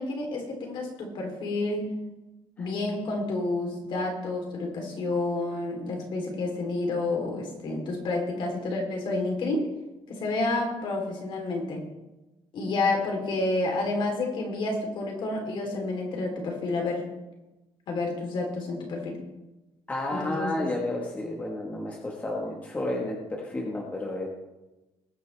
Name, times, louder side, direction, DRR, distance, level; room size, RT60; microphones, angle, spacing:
voice 1, 0.0-1.9 2.6-9.7 10.1-11.8 12.5-17.0 17.9-19.2 20.1-20.7, left 2 dB, 50° left, 1 dB, 3.3 m, -29 dB
voice 2, 19.9-24.3, left 1 dB, 15° left, -1 dB, 1.3 m, -31 dB
20.5 x 9.2 x 3.4 m, 1.0 s
cardioid pair, 180°, 10 cm